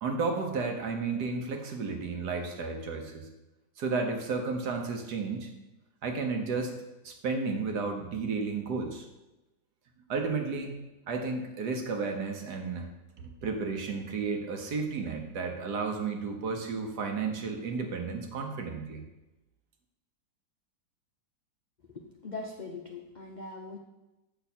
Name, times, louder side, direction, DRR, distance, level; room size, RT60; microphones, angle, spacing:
voice 1, 0.0-3.3 3.8-5.5 6.0-6.7 7.0-9.1 10.1-10.7 11.1-12.9 13.2-19.0, right 4 dB, 65° right, 3 dB, 1.5 m, -32 dB
voice 2, 21.9-23.8, left 3 dB, 70° left, 0 dB, 0.4 m, -41 dB
8.2 x 6.5 x 4.3 m, 1.0 s
omnidirectional pair, 2.0 m